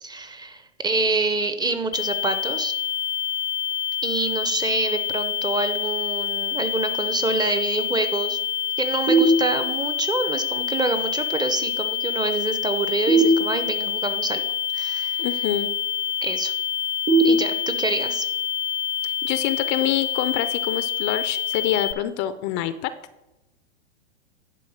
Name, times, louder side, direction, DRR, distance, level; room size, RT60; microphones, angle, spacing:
voice 1, 0.0-2.7 4.0-8.4 8.8-14.4 14.7-15.3 16.2-16.5 17.2-18.3, right 3 dB, 10° right, 9 dB, 0.6 m, -26 dB
sound 1, 1.9-21.9, left 9 dB, 85° left, 0.8 m, -27 dB
sound 2, 9.1-10.0 13.0-14.1 17.1-18.1, right 2 dB, 90° right, 2.1 m, -21 dB
voice 2, 15.2-15.7 19.2-22.9, left 12 dB, 35° left, 13 dB, 0.5 m, -26 dB
10.5 x 4.2 x 6.4 m, 1.0 s
hypercardioid pair, 110°, 34 cm